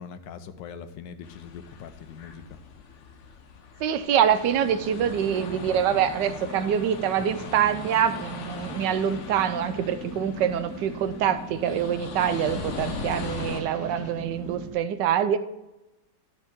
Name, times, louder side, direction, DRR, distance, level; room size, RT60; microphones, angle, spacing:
voice 1, 0.0-2.6, left 7 dB, 85° left, 9 dB, 1.4 m, -42 dB
sound 1, 1.2-13.6, left 5 dB, 55° left, 0.9 m, -40 dB
voice 2, 3.8-15.4, right 9 dB, 80° right, 12 dB, 1.3 m, -25 dB
sound 2, 4.8-14.7, right 2 dB, 10° right, 2.1 m, -40 dB
12.5 x 4.7 x 6.0 m, 0.98 s
omnidirectional pair, 1.9 m